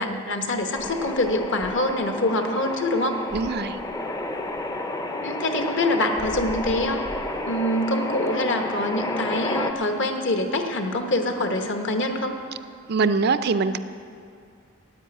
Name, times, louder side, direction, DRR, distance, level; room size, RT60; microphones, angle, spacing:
voice 1, 0.0-3.2 5.2-7.0 7.5-12.4, left 1 dB, 55° left, 5 dB, 1.1 m, -25 dB
sound 1, 0.7-9.7, left 1 dB, 15° left, 0.5 m, -31 dB
voice 2, 3.3-3.8 12.9-13.8, right 4 dB, 45° right, 11 dB, 0.4 m, -23 dB
10.0 x 9.1 x 8.6 m, 2.3 s
head